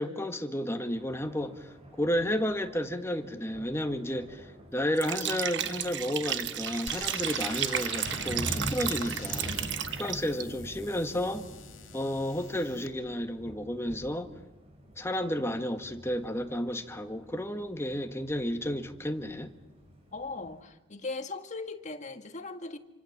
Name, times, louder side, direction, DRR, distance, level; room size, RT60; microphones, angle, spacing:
voice 1, 0.0-4.5 4.7-9.6 10.0-11.5 11.9-14.3 15.0-19.5, equal, 15° left, 1.7 m, -32 dB
Thunder, 0.9-20.6, equal, 30° right, 6.8 m, -45 dB
Liquid, 4.9-10.4, right 10 dB, 60° right, 1.2 m, -33 dB
sound 1, 6.9-12.9, left 6 dB, 70° left, 3.1 m, -46 dB
voice 2, 20.1-22.8, left 3 dB, 35° left, 1.7 m, -38 dB
27.5 x 25.5 x 7.4 m
head